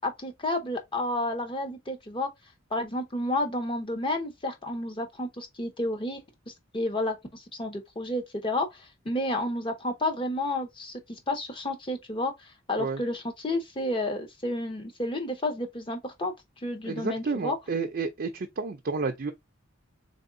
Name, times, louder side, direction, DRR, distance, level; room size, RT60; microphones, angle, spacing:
voice 1, 0.0-2.3 2.7-12.3 12.7-16.3 16.6-17.6, left 1 dB, 25° left, 0.7 m, -31 dB
voice 2, 16.8-19.3, right 4 dB, 45° right, 0.5 m, -31 dB
3.8 x 3.5 x 2.6 m
head